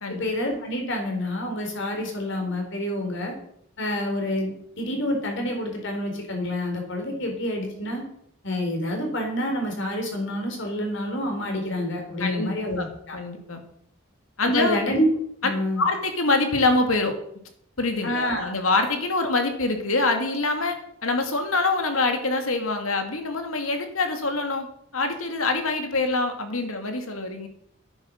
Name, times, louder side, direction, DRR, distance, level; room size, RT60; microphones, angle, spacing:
voice 1, 0.1-3.3 3.8-8.0 8.4-13.2 14.4-15.1 15.4-15.8 18.0-18.5, left 1 dB, 60° left, 2 dB, 3.9 m, -28 dB
voice 2, 12.2-12.8 13.1-13.6 14.4-14.8 15.8-17.1 17.8-24.7 24.9-27.5, left 3 dB, 80° left, 6 dB, 2.3 m, -25 dB
11.5 x 9.7 x 6.4 m, 0.71 s
head